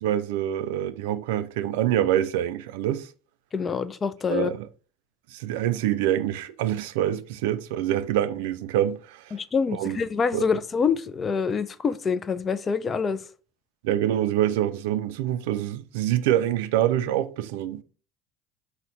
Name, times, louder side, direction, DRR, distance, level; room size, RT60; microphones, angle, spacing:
voice 1, 0.0-3.1 4.3-4.7 5.3-9.3 9.7-10.0 10.3-10.5 13.8-17.8, right 12 dB, 70° right, 0.3 m, -25 dB
voice 2, 3.5-4.5 9.3-13.2, left 6 dB, 30° left, 0.4 m, -26 dB
4.2 x 2.1 x 3.8 m
hypercardioid pair, 70°, 0 cm